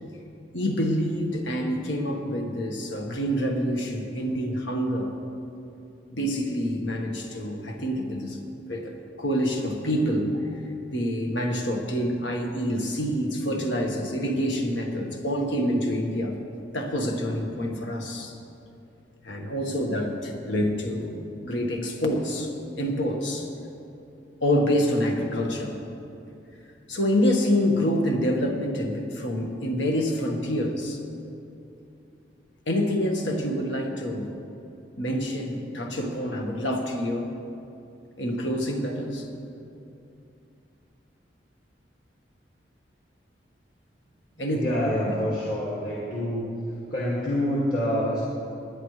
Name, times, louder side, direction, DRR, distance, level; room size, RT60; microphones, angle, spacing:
voice 1, 0.5-5.1 6.1-8.4 8.7-10.6 10.9-16.3 16.7-18.3 19.2-21.2 21.4-23.5 24.4-25.8 26.9-31.0 32.7-34.3 35.0-37.3 38.2-39.3 44.4-45.1, equal, 90° left, 2 dB, 1.5 m, -27 dB
voice 2, 44.5-46.5 46.9-48.2, equal, 50° left, -8 dB, 2.2 m, -27 dB
20.0 x 10.0 x 3.3 m, 2.7 s
head